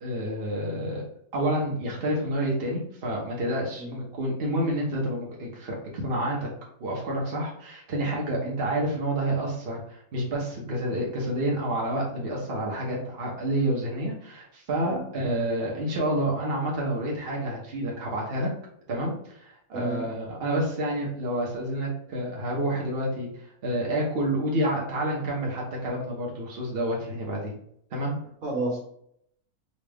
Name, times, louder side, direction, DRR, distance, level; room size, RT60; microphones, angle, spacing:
voice 1, 0.0-1.0 1.3-6.5 6.8-18.5 18.9-27.6 27.9-28.2, right 1 dB, 45° right, -2 dB, 1.0 m, -29 dB
voice 2, 19.7-20.0 28.4-28.8, right 2 dB, 65° right, -2 dB, 1.5 m, -31 dB
4.0 x 2.4 x 3.3 m, 0.69 s
omnidirectional pair, 1.6 m